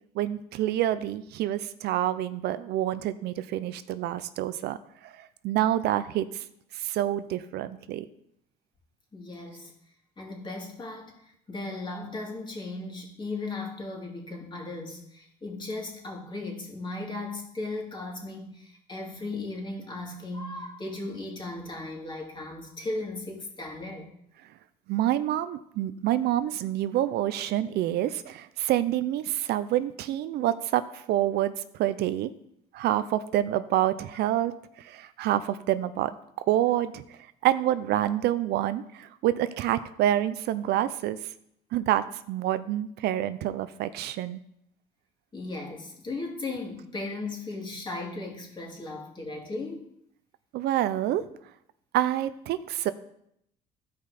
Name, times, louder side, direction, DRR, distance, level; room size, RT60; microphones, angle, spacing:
voice 1, 0.1-4.8 5.0-6.4 6.7-8.1 24.9-32.3 32.7-34.5 34.8-36.1 36.5-37.0 37.4-41.2 41.7-44.4 50.5-51.2 51.9-52.9, right 12 dB, 75° right, 13 dB, 0.6 m, -27 dB
voice 2, 9.1-9.7 10.2-24.1 45.3-49.9, left 2 dB, 25° left, -1 dB, 2.8 m, -36 dB
14.5 x 5.1 x 4.1 m, 0.73 s
cardioid pair, 110°, 17 cm